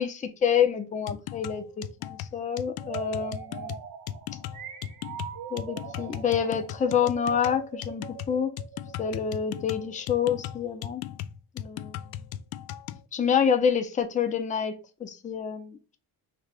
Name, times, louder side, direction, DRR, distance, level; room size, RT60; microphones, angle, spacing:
voice 1, 0.0-3.7 5.5-8.5 9.0-11.0 11.6-12.0 13.1-16.0, left 7 dB, 20° left, 0.5 m, -27 dB
sound 1, 1.1-13.0, left 11 dB, 70° left, 0.5 m, -38 dB
sound 2, 2.8-9.5, right 8 dB, 55° right, 1.0 m, -41 dB
3.4 x 3.2 x 4.9 m
cardioid pair, 160°, 39 cm